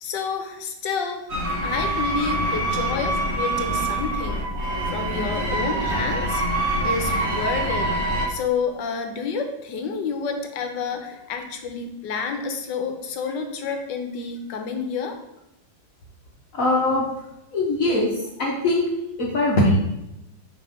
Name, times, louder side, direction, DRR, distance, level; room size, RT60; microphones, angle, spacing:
voice 1, 0.0-1.3 1.6-4.5 4.9-6.4 6.8-15.2, left 5 dB, 75° left, 5 dB, 1.4 m, -29 dB
sound 1, 1.3-8.3, right 1 dB, 45° right, 1.1 m, -25 dB
voice 2, 16.5-17.0 17.5-18.9 19.2-19.8, left 2 dB, 55° left, -2 dB, 1.1 m, -21 dB
5.9 x 3.4 x 5.0 m, 0.88 s
omnidirectional pair, 2.1 m